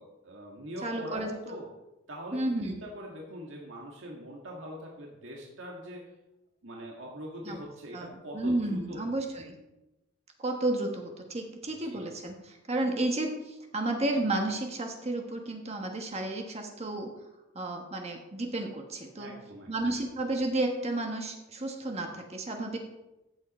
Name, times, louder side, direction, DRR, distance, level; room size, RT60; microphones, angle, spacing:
voice 1, 0.0-1.7 2.1-6.1 6.6-9.1 11.8-12.1 19.2-19.7, equal, 75° right, -1 dB, 1.9 m, -43 dB
voice 2, 0.8-1.3 2.3-2.7 7.4-7.6 7.9-9.5 10.4-17.1 17.5-19.3 19.7-22.8, right 2 dB, 35° right, 2 dB, 1.3 m, -32 dB
14.5 x 7.8 x 4.3 m, 0.99 s
head